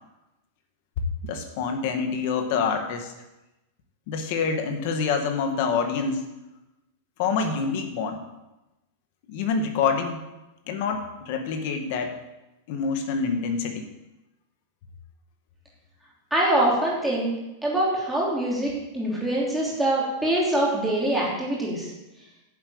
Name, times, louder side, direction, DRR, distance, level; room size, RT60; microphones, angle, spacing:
voice 1, 1.2-3.1 4.1-6.2 7.2-8.2 9.3-10.2 10.7-12.2 12.7-13.9, left 5 dB, 40° left, 5 dB, 1.8 m, -26 dB
voice 2, 16.3-17.3 17.6-21.9, right 1 dB, ahead, -5 dB, 3.2 m, -24 dB
10.5 x 7.8 x 8.7 m, 0.99 s
supercardioid pair, 180°, 0 cm